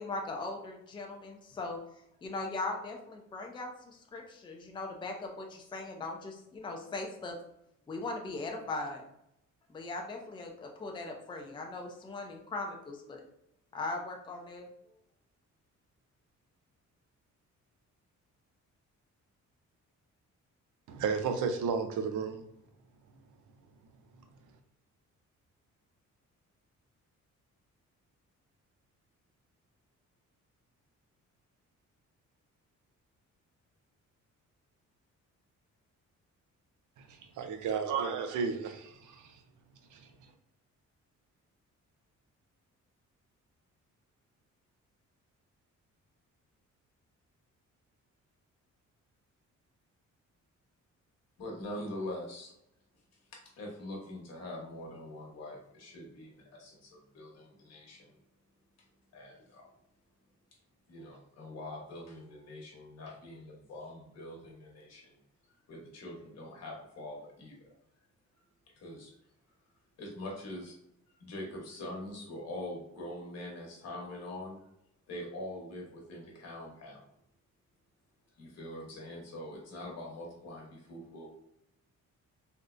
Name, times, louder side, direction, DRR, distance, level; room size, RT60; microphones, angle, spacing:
voice 1, 0.0-1.8 2.2-7.3 7.9-9.0 9.7-13.2 13.7-14.7, left 2 dB, 15° left, 1 dB, 0.4 m, -39 dB
voice 2, 20.9-22.4 37.4-39.3 39.9-40.0, right 6 dB, 80° right, 7 dB, 0.5 m, -32 dB
voice 3, 51.4-52.5 53.6-58.1 59.1-59.7 60.9-65.2 65.7-67.7 68.8-69.1 70.0-70.7 71.2-74.6 75.1-77.0 78.4-81.4, left 1 dB, 55° left, -1 dB, 1.0 m, -43 dB
3.4 x 2.6 x 2.4 m, 0.76 s
cardioid pair, 160°, 30 cm